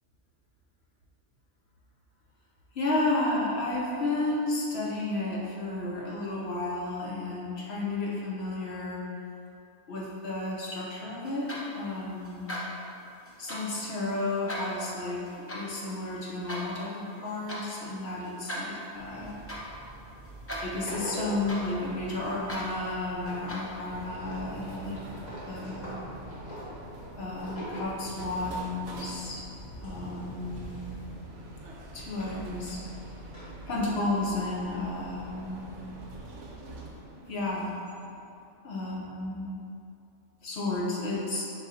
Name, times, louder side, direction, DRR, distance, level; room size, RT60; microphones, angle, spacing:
voice 1, 2.7-9.1 9.9-12.5 13.4-19.4 20.6-25.0 25.5-25.9 27.2-29.4 29.8-30.8 31.9-32.8 33.7-35.6 37.3-37.7 38.6-39.5 40.4-41.4, left 2 dB, 60° left, -5 dB, 1.0 m, -32 dB
sound 1, 11.2-24.0, equal, 20° left, 0.4 m, -42 dB
sound 2, 18.9-36.3, right 1 dB, 35° left, 1.3 m, -44 dB
sound 3, 23.9-38.5, right 1 dB, 80° right, 1.0 m, -46 dB
5.1 x 3.8 x 2.7 m, 2.6 s
omnidirectional pair, 1.3 m